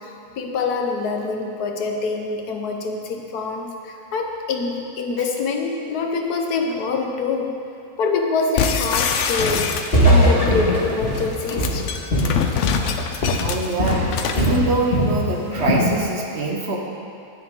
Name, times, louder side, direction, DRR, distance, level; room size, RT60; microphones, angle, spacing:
voice 1, 0.0-7.6 8.0-9.8 10.1-12.0, left 4 dB, 85° left, 2 dB, 1.4 m, -25 dB
sound 1, 8.6-10.3 11.3-14.6, left 7 dB, 65° left, 0.8 m, -24 dB
Walk footsteps, 9.4-9.7 9.9-13.0 13.2-13.5 13.8-15.2 15.5-15.9, equal, 40° left, 2.0 m, -20 dB
voice 2, 13.4-16.8, right 2 dB, 50° right, -1 dB, 1.2 m, -24 dB
10.0 x 9.9 x 3.7 m, 2.5 s
omnidirectional pair, 1.6 m